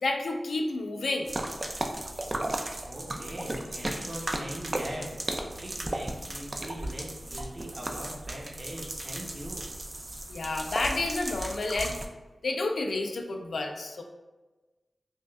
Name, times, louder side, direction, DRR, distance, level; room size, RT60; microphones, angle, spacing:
voice 1, 0.0-1.3 10.3-11.9 12.4-14.0, left 2 dB, 75° left, 3 dB, 0.4 m, -30 dB
sound 1, 1.3-12.1, right 1 dB, 30° right, 0.3 m, -35 dB
voice 2, 2.8-5.1 5.6-9.7, right 1 dB, 45° right, -3 dB, 0.8 m, -41 dB
5.0 x 2.4 x 2.4 m, 1.2 s
wide cardioid pair, 110°, 0 cm